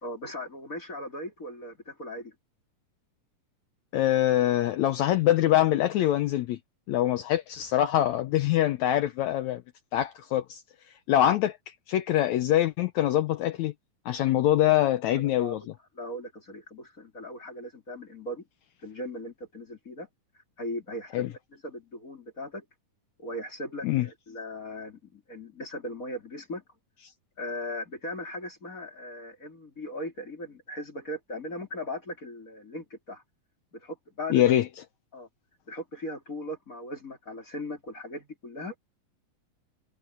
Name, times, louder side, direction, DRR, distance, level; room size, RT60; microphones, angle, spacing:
voice 1, 0.0-2.4 15.1-15.6 16.0-18.4 18.8-20.1 20.6-22.6 23.2-26.6 27.4-33.2 33.7-34.6 35.1-35.3 35.7-38.8, left 1 dB, 25° left, 3.6 m, -38 dB
voice 2, 3.9-6.6 6.9-9.6 9.9-10.6 11.1-11.6 11.9-13.7 14.0-15.6 21.1-21.3 23.8-24.1 34.3-34.7, left 13 dB, 80° left, 1.7 m, -24 dB
omnidirectional pair, 4.0 m